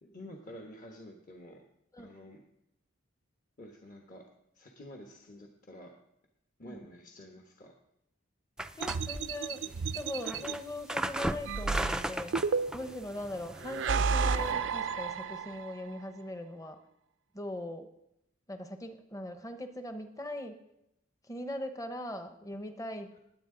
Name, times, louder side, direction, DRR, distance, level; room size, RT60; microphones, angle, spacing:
voice 1, 0.0-1.6 2.0-2.4 3.6-4.2 4.5-5.9 6.6-7.7 10.4-10.6, left 1 dB, 45° left, 1 dB, 1.2 m, -49 dB
sound 1, 8.6-14.5, right 1 dB, 5° right, 0.3 m, -37 dB
voice 2, 8.8-9.6 9.9-12.4 12.7-16.8 17.3-17.9 18.5-20.6 21.2-23.2, left 1 dB, 15° left, 7 dB, 0.9 m, -40 dB
sound 2, 8.8-10.5 11.5-13.0 13.6-15.8, right 5 dB, 70° right, 0.4 m, -32 dB
19.5 x 8.3 x 3.8 m, 0.82 s
head